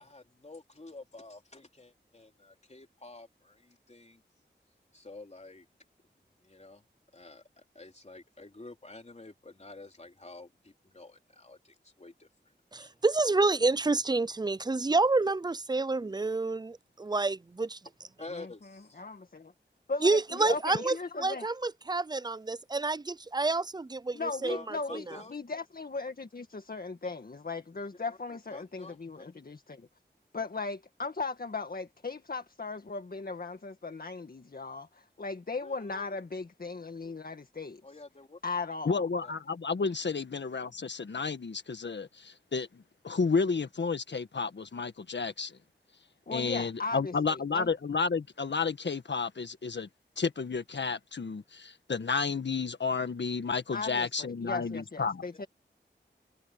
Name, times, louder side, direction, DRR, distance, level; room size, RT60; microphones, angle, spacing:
voice 1, 0.0-4.2 4.9-5.7 6.4-6.8 7.1-12.9 18.2-19.0 24.5-25.3 28.1-29.2 35.6-36.2 37.8-38.4 39.2-39.3, left 2 dB, 35° left, 3.6 m, -49 dB
voice 2, 12.7-17.8 20.0-25.2, right 3 dB, 20° right, 0.5 m, -29 dB
voice 3, 18.3-19.5 19.9-21.5 24.1-29.9 30.3-37.8 38.4-39.0 46.3-47.7 53.7-55.5, left 4 dB, 50° left, 1.8 m, -37 dB
voice 4, 38.8-45.6 46.3-49.9 50.2-55.2, left 4 dB, 75° left, 1.5 m, -31 dB
wide cardioid pair, 80°, 19 cm